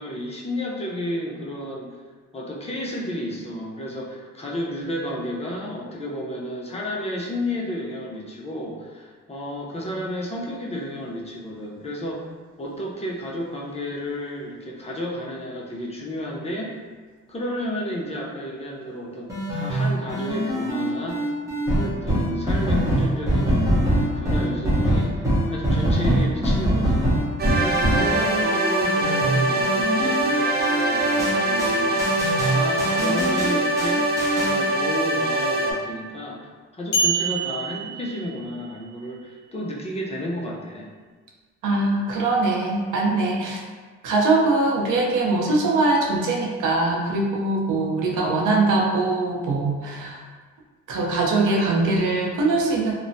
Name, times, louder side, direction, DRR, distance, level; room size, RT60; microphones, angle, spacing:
voice 1, 0.0-2.0 2.3-12.3 12.6-16.8 17.3-21.2 21.7-27.1 27.6-40.9 48.0-48.2 48.5-48.7, equal, 20° left, -2 dB, 0.5 m, -32 dB
sound 1, 19.3-34.6, right 1 dB, 10° right, 0.8 m, -23 dB
sound 2, 27.4-35.7, right 1 dB, 35° right, 0.5 m, -23 dB
sound 3, 36.9-38.8, right 3 dB, 70° left, 0.8 m, -26 dB
voice 2, 41.6-43.6 44.0-50.2 50.9-52.9, right 2 dB, 80° right, -1 dB, 0.6 m, -22 dB
3.0 x 2.1 x 2.6 m, 1.4 s
cardioid pair, 90°, 30 cm